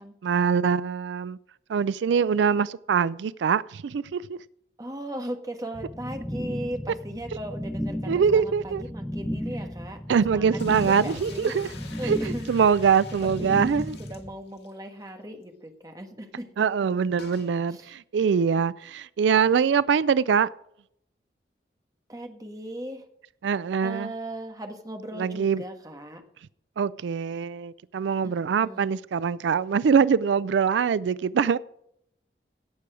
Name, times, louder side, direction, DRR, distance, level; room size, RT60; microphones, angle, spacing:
voice 1, 0.2-1.4 1.7-4.4 8.1-8.8 10.1-11.7 12.0-12.2 12.5-14.0 16.6-20.5 23.4-24.1 25.2-25.6 26.8-31.6, right 6 dB, 90° right, 0.4 m, -23 dB
voice 2, 4.8-10.0 10.3-11.5 12.0-12.7 13.2-13.6 14.0-16.5 17.7-17.9 22.1-23.1 23.8-26.2 28.2-28.3 28.6-29.0, right 1 dB, 20° right, 1.4 m, -38 dB
sound 1, 5.7-14.3, equal, ahead, 0.9 m, -34 dB
sound 2, 10.6-14.8 15.1-15.2 15.4-15.5 17.2-17.5, left 5 dB, 70° left, 2.2 m, -47 dB
17.0 x 6.9 x 4.9 m
head